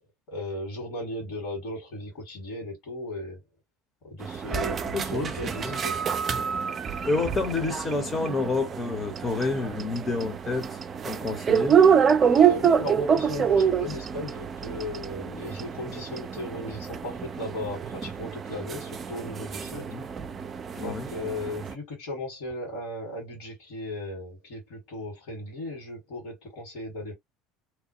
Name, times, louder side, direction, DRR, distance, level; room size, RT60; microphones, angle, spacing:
voice 1, 0.3-3.4 4.0-6.0 12.3-19.9 20.8-27.1, left 1 dB, 60° left, 1.9 m, -36 dB
sound 1, 4.2-21.7, right 7 dB, 35° right, 0.4 m, -26 dB
voice 2, 4.9-5.3 5.6-5.7 7.0-10.8 11.0-11.8 19.7-20.0 20.8-21.1, left 3 dB, 25° left, 0.9 m, -29 dB
2.9 x 2.2 x 2.8 m
figure-of-eight pair, 65°, 0 cm